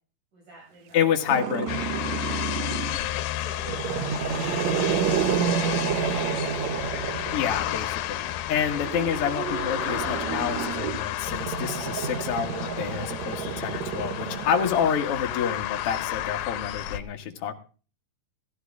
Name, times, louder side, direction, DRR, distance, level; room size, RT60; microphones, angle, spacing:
voice 1, 0.3-1.3 2.1-5.7 8.1-8.3, right 1 dB, 55° right, -4 dB, 8.2 m, -51 dB
voice 2, 0.9-1.8 7.3-17.5, left 8 dB, 50° left, 3 dB, 2.0 m, -28 dB
Growling, 1.3-3.0 3.6-7.8 8.7-15.3, right 8 dB, 70° right, 1.7 m, -30 dB
sound 1, 1.7-17.0, left 13 dB, 85° left, 2.7 m, -32 dB
16.0 x 14.0 x 3.6 m, 0.37 s
omnidirectional pair, 4.2 m